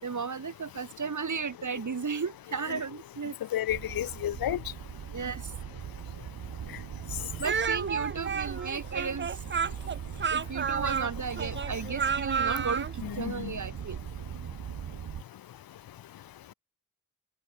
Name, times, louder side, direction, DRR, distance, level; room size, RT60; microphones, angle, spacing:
voice 1, 0.0-3.4 5.1-5.5 7.4-9.4 10.3-14.0, right 5 dB, 55° right, 2.6 m, -34 dB
voice 2, 3.5-4.6 13.0-13.5, left 12 dB, 75° left, 0.6 m, -31 dB
sound 1, 3.7-15.2, right 9 dB, 75° right, 1.0 m, -40 dB
Speech, 7.4-12.9, right 6 dB, 30° right, 0.6 m, -31 dB
cardioid pair, 65°, 36 cm